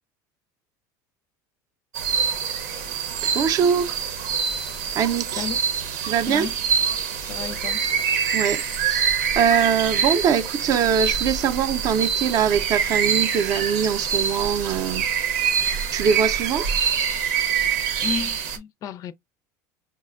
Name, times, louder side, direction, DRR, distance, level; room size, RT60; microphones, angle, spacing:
sound 1, 1.9-18.6, right 7 dB, 90° right, 0.9 m, -25 dB
voice 1, 3.2-4.0 4.9-5.5 6.1-6.5 8.3-15.1 15.9-16.7, right 7 dB, 40° right, 0.5 m, -22 dB
voice 2, 7.3-7.8 18.0-19.1, left 7 dB, 40° left, 0.4 m, -32 dB
5.6 x 2.2 x 2.4 m
supercardioid pair, 140°, 9 cm